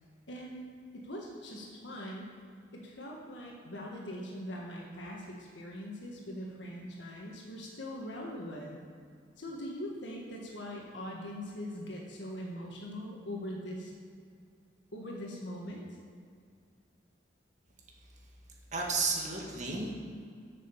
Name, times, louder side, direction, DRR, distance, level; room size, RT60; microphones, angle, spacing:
voice 1, 0.3-0.6 0.9-2.3 2.7-8.8 9.4-13.9 14.9-15.9, equal, 80° left, -2 dB, 1.5 m, -41 dB
voice 2, 18.7-19.9, right 3 dB, 40° right, -2 dB, 1.9 m, -32 dB
7.6 x 7.5 x 6.9 m, 2.2 s
head